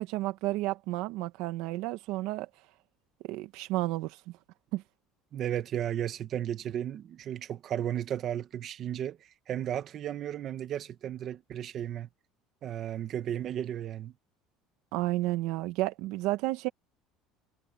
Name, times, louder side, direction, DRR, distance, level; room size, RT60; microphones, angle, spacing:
voice 1, 0.0-2.5 3.2-4.2 4.7-4.8 14.9-16.7, right 18 dB, 65° right, 1.7 m, -31 dB
voice 2, 5.3-12.1 12.6-14.1, right 10 dB, 35° right, 1.5 m, -34 dB
cardioid pair, 165°, 0 cm